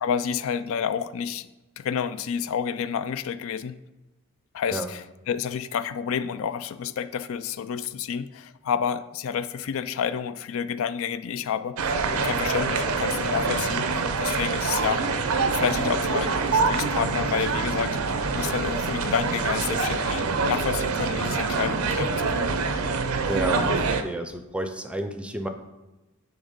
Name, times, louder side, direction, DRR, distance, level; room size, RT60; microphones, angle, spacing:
voice 1, 0.0-1.5 1.8-3.8 4.5-15.0 15.5-22.5, left 7 dB, 65° left, 13 dB, 0.4 m, -29 dB
sound 1, 11.8-24.0, right 4 dB, 85° right, 0.6 m, -25 dB
voice 2, 23.3-25.5, right 1 dB, 5° right, 8 dB, 0.5 m, -31 dB
10.0 x 3.4 x 5.2 m, 1.1 s
head